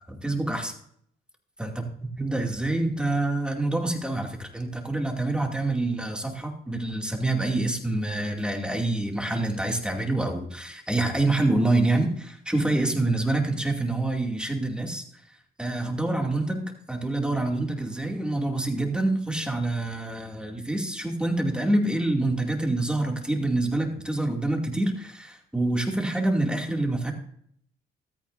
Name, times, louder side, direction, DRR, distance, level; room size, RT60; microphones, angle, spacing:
voice 1, 0.2-0.7 1.6-1.9 2.2-15.0 15.6-27.1, right 2 dB, 5° right, 2 dB, 2.4 m, -26 dB
15.0 x 13.5 x 2.6 m, 0.66 s
cardioid pair, 90°, 20 cm